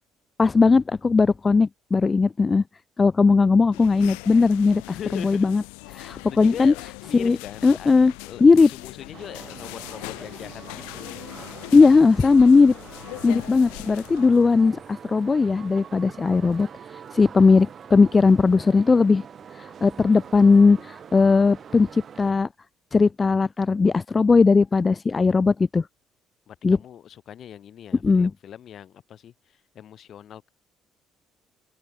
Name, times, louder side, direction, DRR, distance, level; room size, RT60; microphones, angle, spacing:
voice 1, 0.4-2.6 3.0-4.8 5.1-5.6 5.9-6.7 7.1-7.4 7.6-8.1 8.4-8.7 11.7-12.7 13.2-16.7 17.1-19.2 19.5-22.5 22.9-25.9 26.6-26.8 28.0-28.3, left 4 dB, 30° left, 0.7 m, -18 dB
sound 1, 3.7-14.8, left 40 dB or more, 70° left, 0.7 m, -40 dB
voice 2, 4.9-5.5 6.0-8.0 8.2-11.2 26.5-30.5, left 10 dB, 50° left, 3.4 m, -41 dB
sound 2, 9.1-22.3, right 7 dB, 45° right, 2.1 m, -44 dB
open air
figure-of-eight pair, 50°, 0 cm